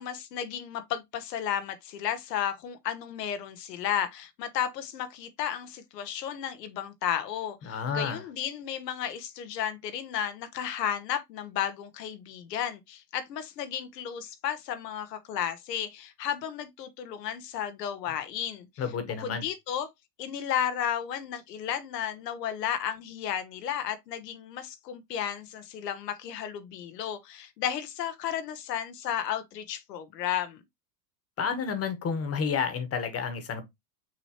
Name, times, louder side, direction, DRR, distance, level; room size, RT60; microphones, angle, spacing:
voice 1, 0.0-18.7 19.1-19.9 20.2-30.6, left 9 dB, 90° left, 0.9 m, -33 dB
voice 2, 7.6-8.2 18.8-19.5 31.4-33.7, left 6 dB, 30° left, 1.1 m, -30 dB
6.1 x 3.0 x 2.8 m
supercardioid pair, 110°, 48 cm